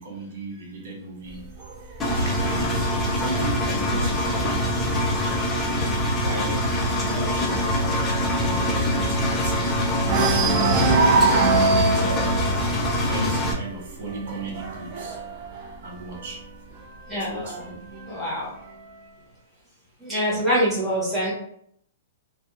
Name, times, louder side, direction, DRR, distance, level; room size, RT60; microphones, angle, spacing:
voice 1, 0.0-1.5 2.1-4.8 6.1-7.8 8.4-10.1 10.5-12.1 13.0-15.2 15.8-16.4 17.1-17.7, right 2 dB, 60° right, -3 dB, 1.1 m, -36 dB
sound 1, 1.3-4.9 5.3-5.6 5.9-6.0 6.4-9.6 10.0-16.6 17.4-18.4, right 3 dB, 35° right, 0.4 m, -25 dB
Engine, 2.0-13.5, left 1 dB, 15° left, 0.5 m, -24 dB
Bowed string instrument, 7.4-11.2, left 3 dB, 60° left, 0.7 m, -37 dB
voice 2, 17.1-17.6 18.1-18.5 20.0-21.3, equal, ahead, -10 dB, 1.3 m, -25 dB
2.7 x 2.4 x 2.4 m, 0.68 s
hypercardioid pair, 140°, 0 cm